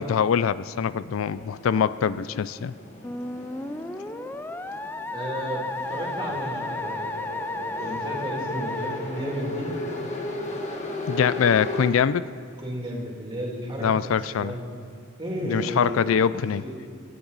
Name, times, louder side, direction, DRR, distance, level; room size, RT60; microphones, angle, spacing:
voice 1, 0.0-2.7 11.1-12.2 13.8-14.5 15.4-16.6, left 7 dB, 75° left, 16 dB, 0.4 m, -23 dB
sound 1, 1.2-11.9, left 2 dB, 35° left, 1.6 m, -36 dB
Musical instrument, 3.0-9.9, left 2 dB, 10° left, 0.4 m, -33 dB
voice 2, 5.1-7.2 7.8-9.8 12.6-14.1 14.4-14.6 15.2-16.1 16.6-16.7, equal, 25° right, -2 dB, 2.9 m, -33 dB
27.0 x 10.0 x 4.0 m, 2.3 s
head